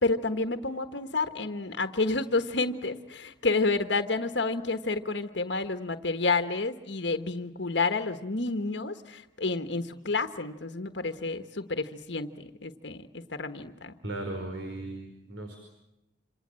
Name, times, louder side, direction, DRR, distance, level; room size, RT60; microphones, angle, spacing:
voice 1, 0.0-13.1 13.4-13.9, left 3 dB, 65° left, 8 dB, 1.3 m, -30 dB
voice 2, 14.0-15.6, right 2 dB, 80° right, 3 dB, 4.9 m, -37 dB
27.5 x 27.0 x 7.6 m, 0.86 s
head